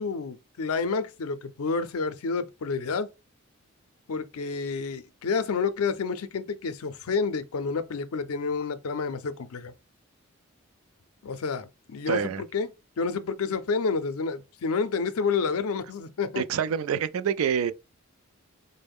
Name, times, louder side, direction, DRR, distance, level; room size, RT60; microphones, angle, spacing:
voice 1, 0.0-3.1 4.1-9.7 11.2-12.2 12.5-12.7 13.0-16.4, left 4 dB, 85° left, 0.5 m, -29 dB
voice 2, 12.1-12.4 16.4-17.7, right 7 dB, 75° right, 0.3 m, -26 dB
4.3 x 2.1 x 3.4 m
head